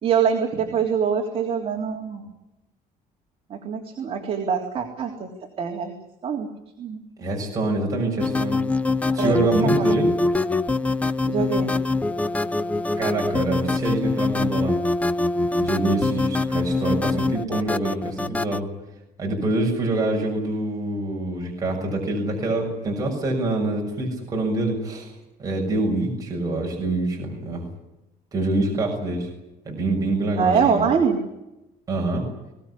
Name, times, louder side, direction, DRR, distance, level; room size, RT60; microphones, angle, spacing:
voice 1, 0.0-2.2 3.5-5.3 5.6-5.9 6.2-6.5 6.8-7.0 9.2-9.5 9.8-9.9 11.3-11.7 30.4-31.2, right 6 dB, 40° right, 1 dB, 3.5 m, -24 dB
voice 2, 7.2-8.6 9.1-10.1 13.0-14.8 15.5-18.7 19.2-27.6 28.3-29.3 29.6-30.9 31.9-32.3, right 2 dB, 20° right, -1 dB, 6.7 m, -25 dB
sound 1, 8.2-18.6, left 2 dB, 10° left, 0.8 m, -23 dB
22.5 x 18.5 x 10.0 m, 0.94 s
cardioid pair, 160°, 16 cm